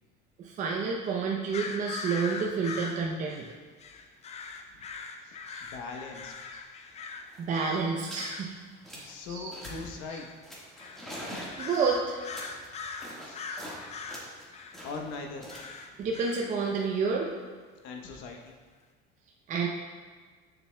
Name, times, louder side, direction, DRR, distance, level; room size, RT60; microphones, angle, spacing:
voice 1, 0.4-3.5 5.5-5.6 7.4-8.5 8.9-9.5 10.1-10.2 11.6-12.2 13.5-13.6 16.0-17.3 19.5-19.7, right 5 dB, 35° right, -1 dB, 0.6 m, -30 dB
sound 1, 1.5-7.8 8.1-8.5 9.6-10.4 10.8-11.1 11.5-14.8 15.5-16.5, left 5 dB, 30° left, 0.5 m, -41 dB
voice 2, 5.2-6.3 8.9-10.3 13.2-13.4 14.8-15.5 17.8-18.5, left 4 dB, 70° left, 3 dB, 1.0 m, -40 dB
sound 2, 7.0-7.1 7.2-7.5 8.0-8.3 8.6-9.2 9.5-10.0 10.4-13.8 14.1-17.1, equal, ahead, 1.6 m, -44 dB
7.0 x 6.9 x 2.3 m, 1.5 s
cardioid pair, 120°, 21 cm